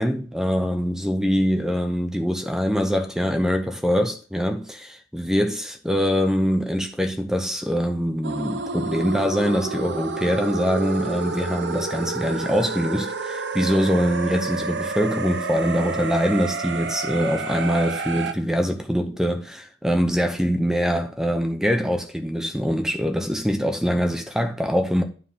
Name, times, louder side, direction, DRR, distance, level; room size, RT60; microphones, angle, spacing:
voice 1, 0.0-25.0, equal, 5° right, 0.7 m, -23 dB
sound 1, 8.2-18.3, right 4 dB, 60° right, 0.7 m, -29 dB
9.7 x 3.3 x 5.6 m
head